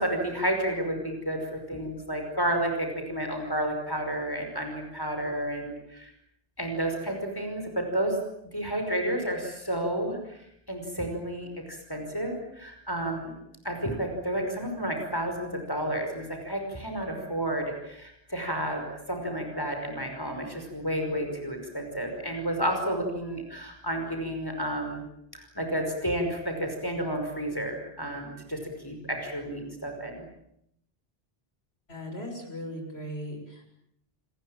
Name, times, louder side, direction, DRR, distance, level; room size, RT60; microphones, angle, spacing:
voice 1, 0.0-6.1 6.6-8.2 8.5-10.4 10.7-13.4 13.6-25.1 25.3-30.3, right 1 dB, 20° left, 3 dB, 5.5 m, -31 dB
voice 2, 31.9-33.6, equal, 90° left, 4 dB, 7.1 m, -38 dB
28.5 x 20.5 x 9.0 m, 0.77 s
omnidirectional pair, 1.0 m